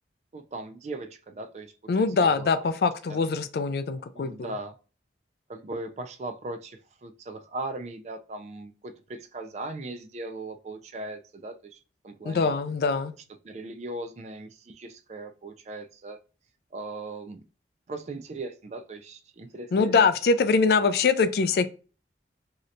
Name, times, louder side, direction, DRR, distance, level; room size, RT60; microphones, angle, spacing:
voice 1, 0.3-1.7 2.2-2.5 3.1-3.3 4.1-4.8 5.5-12.5 13.4-16.2 16.7-17.4 17.9-20.1 20.7-20.9, right 2 dB, 40° right, 0.3 m, -39 dB
voice 2, 1.9-4.5 12.3-13.1 19.7-21.7, left 4 dB, 60° left, 0.3 m, -23 dB
2.8 x 2.6 x 3.1 m
head